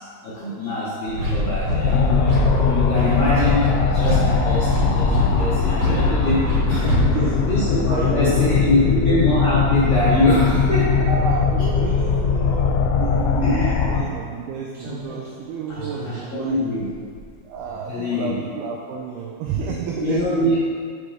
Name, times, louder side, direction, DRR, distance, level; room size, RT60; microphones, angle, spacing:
voice 1, 0.2-2.3 2.6-6.4 6.7-7.0 7.5-11.1 13.4-13.8 15.8-16.9 17.9-18.4 20.0-20.5, left 1 dB, 70° left, -11 dB, 1.8 m, -23 dB
sound 1, 1.1-7.1, equal, 65° right, 2.7 m, -23 dB
sound 2, 1.8-14.0, left 6 dB, 90° left, 3.1 m, -20 dB
voice 2, 6.8-7.5 7.9-8.9 11.1-16.7 17.4-20.6, right 6 dB, 90° right, -1 dB, 2.3 m, -30 dB
Slam, 13.4-13.5 14.7-18.3 18.6-18.7, left 1 dB, 45° right, 2.0 m, -40 dB
6.8 x 4.5 x 4.8 m, 2.1 s
omnidirectional pair, 5.3 m